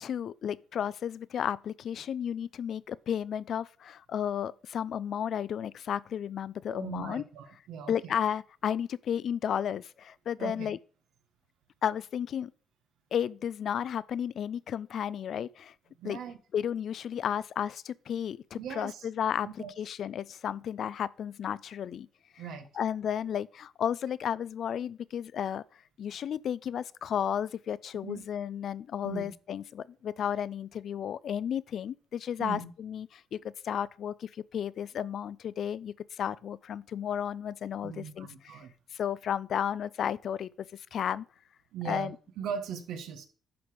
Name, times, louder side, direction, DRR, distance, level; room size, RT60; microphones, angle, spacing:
voice 1, 0.0-7.2 7.9-10.8 11.8-12.5 13.1-15.7 16.0-16.2 16.5-22.1 22.8-25.6 26.0-33.1 33.3-33.4 33.6-38.6 38.9-41.2 41.9-42.2, left 9 dB, 65° left, 0.4 m, -33 dB
voice 2, 6.7-8.1 10.4-10.7 16.0-16.4 18.6-19.1 19.4-19.7 22.4-22.7 28.0-28.3 29.0-29.3 32.4-32.7 37.8-38.7 41.7-43.3, right 7 dB, 85° right, 1.4 m, -39 dB
10.5 x 5.1 x 5.0 m
cardioid pair, 90°, 0 cm